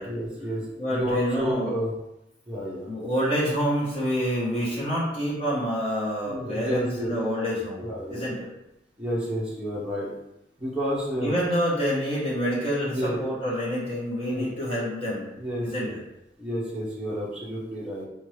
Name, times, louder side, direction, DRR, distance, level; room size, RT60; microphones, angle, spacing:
voice 1, 0.0-1.9 2.5-2.9 6.2-7.2 7.8-8.4 9.0-10.1 10.6-11.4 12.9-13.3 14.2-14.5 15.4-15.9 16.4-18.1, equal, 5° right, -7 dB, 0.9 m, -30 dB
voice 2, 0.8-1.7 2.9-8.5 11.2-15.3 15.6-16.0, equal, 30° left, -6 dB, 1.2 m, -27 dB
4.4 x 2.7 x 3.2 m, 0.87 s
head